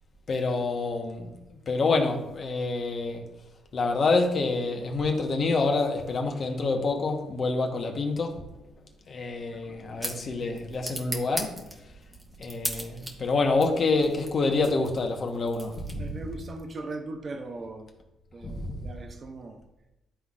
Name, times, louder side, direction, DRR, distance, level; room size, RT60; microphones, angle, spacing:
voice 1, 0.3-3.3 3.7-8.5 9.1-11.9 12.4-16.2 18.4-18.9, left 3 dB, 50° left, 1.1 m, -27 dB
sound 1, 9.4-16.3, right 1 dB, 15° right, 1.1 m, -39 dB
voice 2, 9.6-10.0 16.0-17.9 18.3-19.6, right 2 dB, 40° right, 0.7 m, -39 dB
11.5 x 3.9 x 2.4 m
cardioid pair, 90°, 0 cm